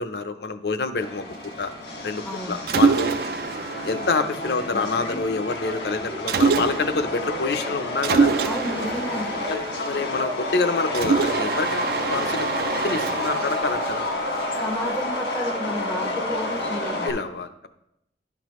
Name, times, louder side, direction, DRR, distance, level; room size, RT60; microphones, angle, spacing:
voice 1, 0.0-1.7 2.0-3.2 3.8-8.3 9.5-14.0 17.0-17.7, left 3 dB, 70° left, 10 dB, 0.5 m, -27 dB
Subway metro underground, 1.0-17.1, left 2 dB, 85° left, 1.5 m, -30 dB
voice 2, 2.2-2.6 8.4-9.3 14.5-17.2, equal, 10° left, 3 dB, 0.5 m, -31 dB
Mechanisms, 2.7-5.1 6.3-7.1 8.0-10.3 10.9-15.1, right 5 dB, 55° right, 0.3 m, -26 dB
11.0 x 5.9 x 3.0 m, 0.81 s
head